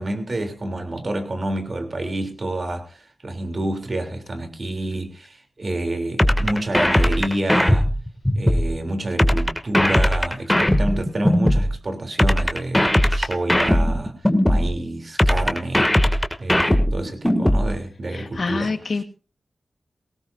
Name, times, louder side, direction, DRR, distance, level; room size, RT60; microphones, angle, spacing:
voice 1, 0.0-7.9 8.3-14.1 14.4-16.0 16.4-19.0, right 1 dB, 55° right, 5 dB, 3.4 m, -28 dB
sound 1, 6.2-8.7 9.2-11.7 12.2-14.7 15.2-17.7, left 1 dB, 10° left, 2.3 m, -18 dB
voice 2, 18.1-19.0, left 4 dB, 70° left, 8 dB, 1.5 m, -26 dB
18.5 x 18.0 x 2.7 m, 0.35 s
cardioid pair, 45°, 0 cm